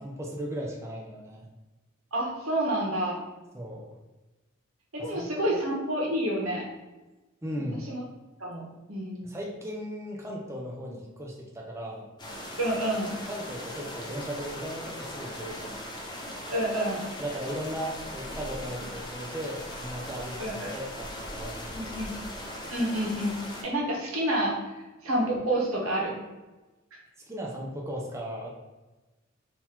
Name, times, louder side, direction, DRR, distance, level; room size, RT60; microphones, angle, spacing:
voice 1, 0.0-1.5 3.5-3.9 5.0-5.6 7.4-7.8 9.2-12.1 13.3-15.8 17.2-22.0 27.3-28.5, equal, 15° right, -2 dB, 0.6 m, -37 dB
voice 2, 2.1-3.2 4.9-6.6 7.9-8.0 8.4-9.3 12.6-13.1 16.5-17.0 20.4-20.7 21.7-22.1 22.7-23.3 23.6-24.7 25.0-26.2, right 1 dB, 90° right, -1 dB, 1.2 m, -28 dB
sound 1, 12.2-23.6, left 1 dB, 20° left, 0.7 m, -39 dB
3.9 x 2.8 x 4.4 m, 1.1 s
head